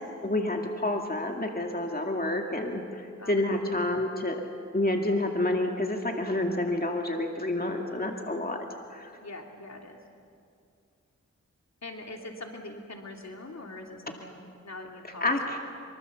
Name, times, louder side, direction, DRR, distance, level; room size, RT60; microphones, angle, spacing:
voice 1, 0.2-4.4 4.7-8.6 8.9-9.1 15.2-15.6, left 1 dB, 30° left, 2 dB, 2.2 m, -29 dB
voice 2, 3.2-3.8 8.1-8.4 9.2-10.0 11.8-15.5, left 2 dB, 65° left, 1 dB, 3.0 m, -43 dB
24.5 x 24.5 x 7.0 m, 2.4 s
wide cardioid pair, 50°, 29 cm